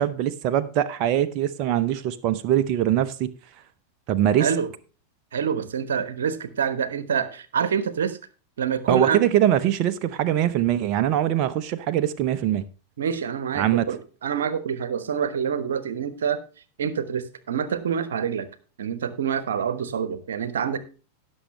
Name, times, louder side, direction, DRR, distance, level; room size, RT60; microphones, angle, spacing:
voice 1, 0.0-3.3 4.1-4.5 8.9-12.6 13.5-13.9, right 11 dB, 40° right, 0.7 m, -22 dB
voice 2, 5.3-8.2 8.6-9.2 13.0-16.4 16.8-18.5 18.8-20.8, right 7 dB, 65° right, 1.1 m, -26 dB
17.5 x 6.4 x 3.1 m
figure-of-eight pair, 90°, 0 cm